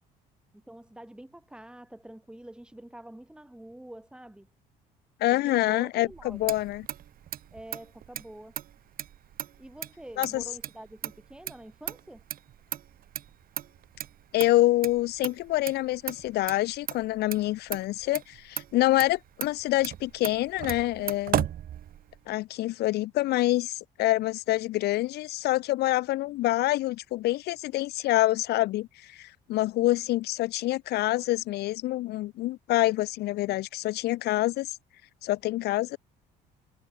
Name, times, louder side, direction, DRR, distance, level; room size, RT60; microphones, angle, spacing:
voice 1, 0.5-4.5 5.3-6.5 7.5-8.6 9.6-12.2, right 1 dB, 5° right, 3.7 m, -46 dB
voice 2, 5.2-6.9 10.2-10.4 14.3-21.5 22.3-34.8 35.2-36.0, left 17 dB, 75° left, 0.9 m, -26 dB
Motor vehicle (road), 6.1-22.3, right 11 dB, 60° right, 2.8 m, -37 dB
cardioid pair, 110°, 17 cm